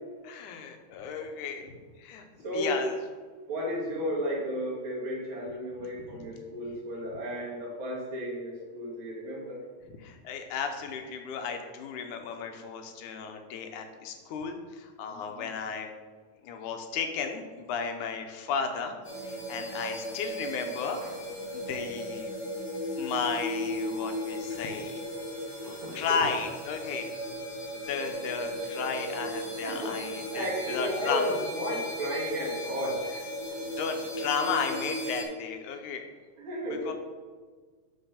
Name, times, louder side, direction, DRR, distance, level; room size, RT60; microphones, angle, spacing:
voice 1, 0.2-2.3 2.5-3.0 6.1-6.3 10.0-15.9 16.4-19.0 19.2-21.0 21.5-22.3 23.0-25.0 25.9-27.4 27.8-31.2 33.5-36.1 36.7-36.9, left 6 dB, 85° left, 5 dB, 2.3 m, -34 dB
voice 2, 2.4-2.9 3.5-9.7 15.1-15.5 21.0-21.1 24.2-26.2 29.6-30.0 30.3-33.1 36.4-36.9, equal, 45° right, -6 dB, 3.0 m, -34 dB
sound 1, 19.0-35.2, equal, 35° left, 2.8 m, -36 dB
6.8 x 6.2 x 5.8 m, 1.5 s
omnidirectional pair, 3.5 m